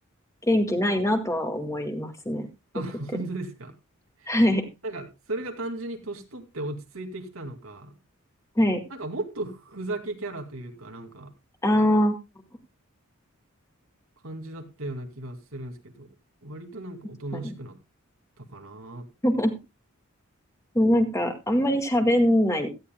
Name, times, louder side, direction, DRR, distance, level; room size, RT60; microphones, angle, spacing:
voice 1, 0.5-2.5 4.3-4.7 8.6-8.8 11.6-12.1 17.3-17.5 19.2-19.5 20.7-22.7, equal, 15° left, 5 dB, 2.0 m, -22 dB
voice 2, 2.7-3.7 4.2-4.3 4.8-7.9 8.9-11.3 14.2-16.1 16.4-17.8 18.4-19.1, right 2 dB, 70° right, 5 dB, 2.4 m, -36 dB
17.0 x 13.0 x 2.2 m, 0.26 s
head